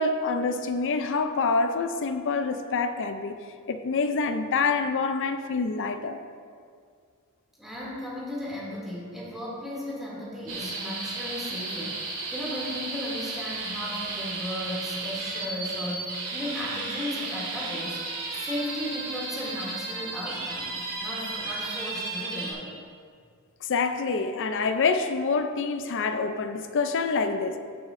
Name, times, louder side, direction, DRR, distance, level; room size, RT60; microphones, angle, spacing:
voice 1, 0.0-3.4 3.7-6.2 23.7-27.6, left 4 dB, 60° left, 8 dB, 0.5 m, -26 dB
voice 2, 7.6-18.0 18.3-20.7 21.0-22.7, left 1 dB, ahead, -7 dB, 2.6 m, -35 dB
sound 1, 10.5-22.5, right 3 dB, 75° right, 2.5 m, -34 dB
15.5 x 7.2 x 2.6 m, 2.1 s
head